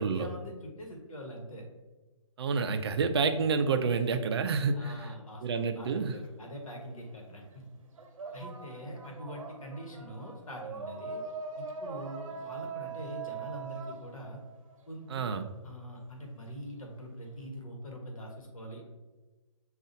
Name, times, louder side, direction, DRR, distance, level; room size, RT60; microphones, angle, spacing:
voice 1, 0.0-1.7 4.7-7.6 8.3-11.2 11.6-14.4 14.9-15.3 15.6-18.9, equal, 85° left, 1 dB, 1.2 m, -43 dB
voice 2, 2.4-4.8 5.4-6.1 15.1-15.5, right 5 dB, 50° right, 8 dB, 0.4 m, -28 dB
sound 1, 5.9-7.2 7.5-15.3, right 5 dB, 80° right, 0.8 m, -42 dB
6.5 x 2.4 x 2.6 m, 1.2 s
hypercardioid pair, 160°, 17 cm